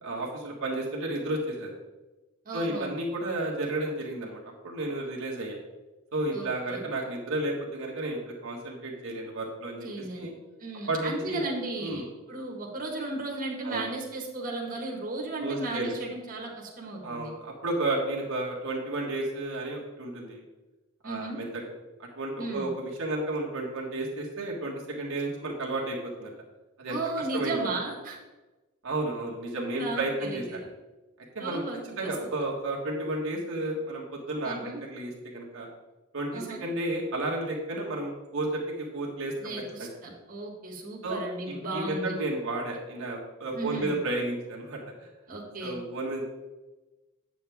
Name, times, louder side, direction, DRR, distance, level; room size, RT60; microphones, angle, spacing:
voice 1, 0.0-1.7 2.5-5.6 6.1-10.3 10.9-11.4 11.8-12.1 13.6-13.9 15.4-15.9 17.0-20.4 21.0-21.6 22.0-26.3 26.8-27.0 27.3-27.6 28.8-30.6 31.3-31.6 32.0-35.7 36.1-39.5 39.8-39.9 41.0-41.2 41.5-45.1 45.6-46.3, right 2 dB, 65° right, -3 dB, 1.6 m, -32 dB
voice 2, 2.4-2.9 6.3-6.8 9.8-10.3 10.6-12.0 12.3-17.3 21.0-21.4 22.4-22.7 26.9-28.2 29.8-30.7 31.4-31.8 32.0-32.3 34.4-34.8 36.3-36.6 39.4-42.1 43.5-44.0 45.3-45.8, right 2 dB, 40° right, -1 dB, 1.6 m, -35 dB
8.5 x 7.5 x 3.5 m, 1.1 s
head